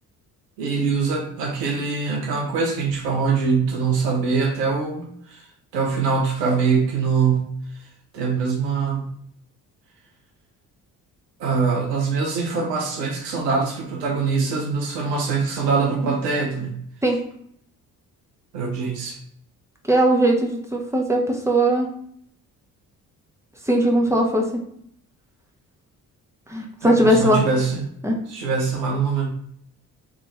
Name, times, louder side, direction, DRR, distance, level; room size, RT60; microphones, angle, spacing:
voice 1, 0.6-5.5 5.7-7.6 8.1-9.1 11.4-16.8 18.5-19.2 26.8-27.8 28.3-29.3, right 5 dB, 85° right, 1 dB, 0.7 m, -23 dB
voice 2, 19.9-21.9 23.6-24.6 26.5-27.4 28.0-28.2, right 1 dB, 5° right, 0 dB, 0.9 m, -19 dB
3.6 x 2.8 x 3.0 m, 0.67 s
figure-of-eight pair, 45°, 48 cm